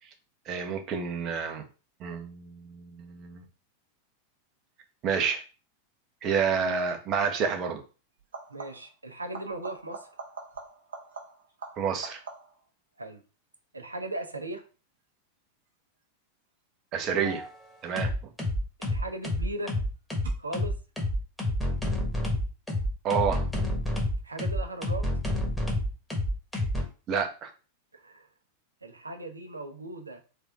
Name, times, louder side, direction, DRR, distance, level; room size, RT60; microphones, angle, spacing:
voice 1, 0.5-1.6 2.0-3.4 5.0-5.4 6.2-7.8 11.8-12.2 16.9-17.4 17.8-18.3 23.0-23.4 27.1-27.5, right 6 dB, 35° right, 4 dB, 0.9 m, -29 dB
sound 1, 6.8-7.0 8.2-9.0 9.3-12.7 18.1-18.7 20.2-20.3, right 4 dB, 65° right, 1.1 m, -44 dB
voice 2, 8.5-10.1 13.0-13.2 13.7-14.6 18.8-19.8 20.4-20.7 24.2-25.1 27.9-28.3 28.8-30.2, right 2 dB, 80° right, 6 dB, 0.8 m, -37 dB
sound 2, 17.2-17.5 18.0-26.8, left 1 dB, 5° left, 1.4 m, -28 dB
3.6 x 3.6 x 3.5 m, 0.35 s
figure-of-eight pair, 90°, 0 cm